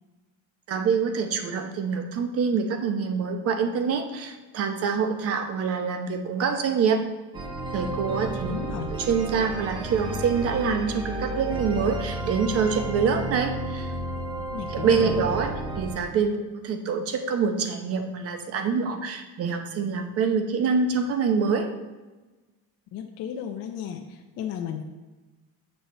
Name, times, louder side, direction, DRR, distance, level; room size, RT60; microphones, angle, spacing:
voice 1, 0.7-7.0 7.7-8.5 9.1-13.9 14.7-15.5 15.8-21.7, right 5 dB, 40° right, 6 dB, 0.8 m, -25 dB
sound 1, 7.3-16.0, right 2 dB, 15° right, 0.6 m, -32 dB
voice 2, 8.5-8.9 14.5-15.3 22.9-24.8, left 8 dB, 45° left, 2 dB, 0.6 m, -34 dB
8.4 x 5.6 x 4.2 m, 1.2 s
cardioid pair, 175°, 35 cm